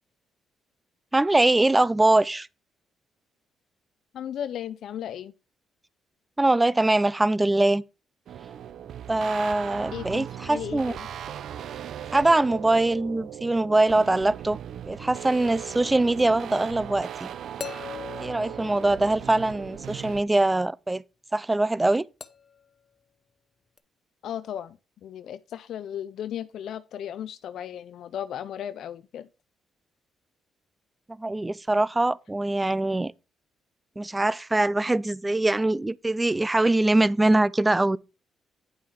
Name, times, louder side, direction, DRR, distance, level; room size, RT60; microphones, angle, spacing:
voice 1, 1.1-2.5 6.4-7.8 9.1-10.9 12.1-14.6 14.9-17.3 18.2-21.0 21.3-22.1 31.1-33.1 34.0-38.0, right 2 dB, 15° right, 0.4 m, -23 dB
voice 2, 4.1-5.3 9.9-11.1 19.3-19.4 24.2-29.3, left 10 dB, 70° left, 0.4 m, -36 dB
sound 1, 8.3-20.2, right 9 dB, 65° right, 0.6 m, -38 dB
sound 2, 16.2-16.3 17.6-19.7 22.2-22.7 23.8-23.9, left 7 dB, 40° left, 0.8 m, -41 dB
9.4 x 5.6 x 4.7 m
cardioid pair, 90°, 0 cm